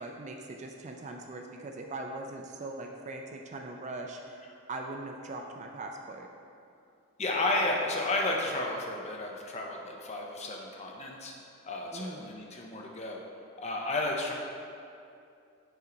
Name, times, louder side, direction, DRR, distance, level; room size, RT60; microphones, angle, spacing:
voice 1, 0.0-4.4 4.7-6.3 11.9-12.3, right 2 dB, 30° right, 2 dB, 0.3 m, -40 dB
voice 2, 7.2-11.3 11.6-13.2 13.6-14.3, left 2 dB, 30° left, 0 dB, 0.6 m, -32 dB
5.6 x 4.5 x 3.9 m, 2.5 s
head